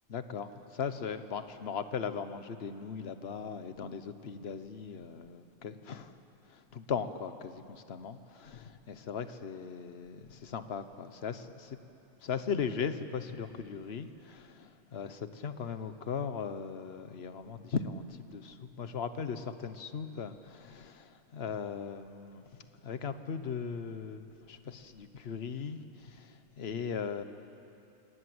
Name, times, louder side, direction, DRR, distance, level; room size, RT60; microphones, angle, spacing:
voice 1, 0.1-6.2 6.5-11.8 12.2-27.2, left 6 dB, 50° left, 10 dB, 1.2 m, -38 dB
28.5 x 19.0 x 7.9 m, 2.8 s
omnidirectional pair, 1.4 m